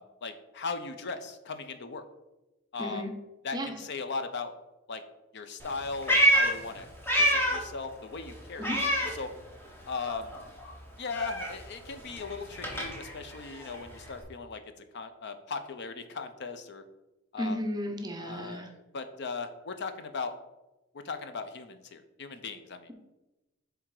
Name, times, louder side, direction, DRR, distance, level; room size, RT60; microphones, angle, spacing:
voice 1, 0.0-2.0 2.7-3.1 3.4-4.5 4.9-5.0 5.3-6.9 7.2-9.3 9.9-10.4 11.0-14.6 14.9-16.8 17.3-17.6 18.2-20.4 20.9-22.9, left 4 dB, 55° left, 8 dB, 0.6 m, -38 dB
voice 2, 2.8-3.1 3.5-3.7 8.6-8.8 17.4-18.7, equal, 20° right, 3 dB, 0.7 m, -34 dB
Meow, 5.6-7.8 8.1-9.8 10.0-14.2, equal, 10° left, 1.0 m, -28 dB
7.5 x 3.4 x 4.8 m, 1.0 s
head